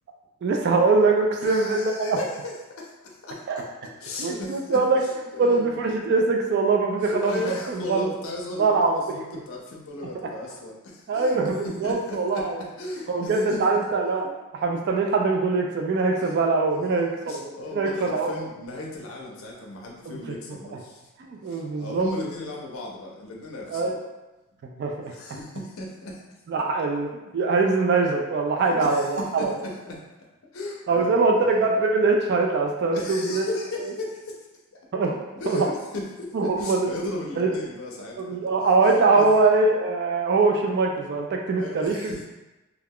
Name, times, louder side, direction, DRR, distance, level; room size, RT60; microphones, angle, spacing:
voice 1, 0.4-2.2 3.5-3.6 4.2-5.0 5.4-7.4 7.7-8.1 8.6-9.2 11.1-12.6 13.1-14.3 14.6-18.3 20.1-20.4 21.2-22.1 23.7-24.0 24.8-25.1 26.5-29.5 30.9-33.5 34.9-35.1 35.5-35.7 36.3-36.9 37.4-37.5 38.2-42.1, right 3 dB, 50° right, 2 dB, 0.3 m, -22 dB
voice 2, 1.4-3.6 4.0-5.9 7.0-13.6 14.2-14.3 16.2-21.1 21.4-24.0 25.1-26.2 28.6-30.0 30.5-31.7 32.9-34.5 35.1-38.4 38.8-39.2 41.6-42.3, left 2 dB, 70° left, -2 dB, 0.5 m, -36 dB
2.3 x 2.2 x 3.4 m, 1.0 s
head